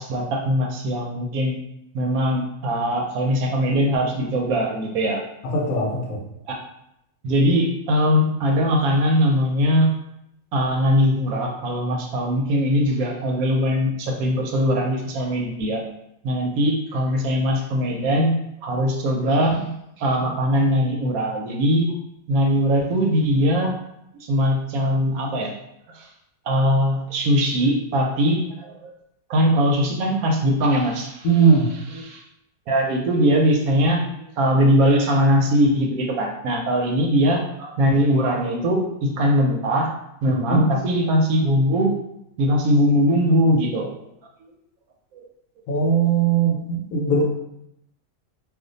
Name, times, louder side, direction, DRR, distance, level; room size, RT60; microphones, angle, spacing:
voice 1, 0.0-1.6 1.9-5.2 6.5-6.6 7.2-9.9 10.5-15.8 16.2-21.9 22.3-23.8 24.3-25.5 25.9-26.1 26.5-28.9 29.3-31.3 32.0-32.2 32.7-34.0 34.4-39.9 40.2-41.9 42.4-43.9 44.4-44.5 45.1-45.2, equal, 70° right, 1 dB, 1.0 m, -21 dB
voice 2, 5.4-6.2 31.2-31.7 40.2-40.6 45.7-47.2, right 5 dB, 70° left, 0 dB, 1.0 m, -19 dB
2.5 x 2.4 x 3.8 m, 0.80 s
omnidirectional pair, 1.6 m